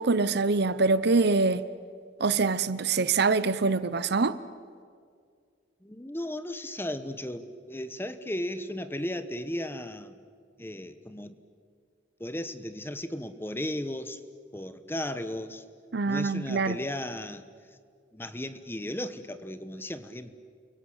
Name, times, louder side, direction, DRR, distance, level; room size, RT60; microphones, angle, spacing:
voice 1, 0.0-1.7 2.2-4.4 15.9-16.8, right 4 dB, 60° right, 0.8 m, -24 dB
voice 2, 5.8-10.2 10.6-11.4 12.2-14.2 14.5-15.6 16.0-17.5 18.1-20.3, left 1 dB, 10° left, 1.1 m, -35 dB
30.0 x 23.0 x 8.0 m
head